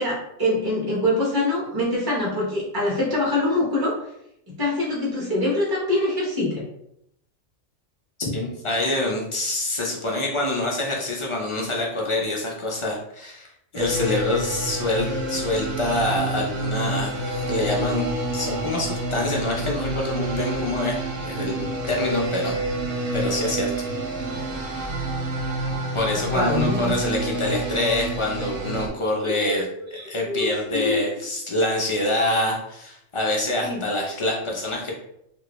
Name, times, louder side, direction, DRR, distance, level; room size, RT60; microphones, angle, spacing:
voice 1, 0.0-4.0 4.5-6.6 26.0-27.0 29.2-31.1 33.6-33.8, left 1 dB, 20° right, -5 dB, 1.0 m, -25 dB
voice 2, 8.2-22.5 23.1-23.9 25.9-34.9, left 1 dB, 45° left, -2 dB, 0.4 m, -26 dB
sound 1, 13.8-28.9, right 2 dB, 75° right, 1.0 m, -28 dB
3.0 x 2.5 x 3.0 m, 0.77 s
omnidirectional pair, 1.3 m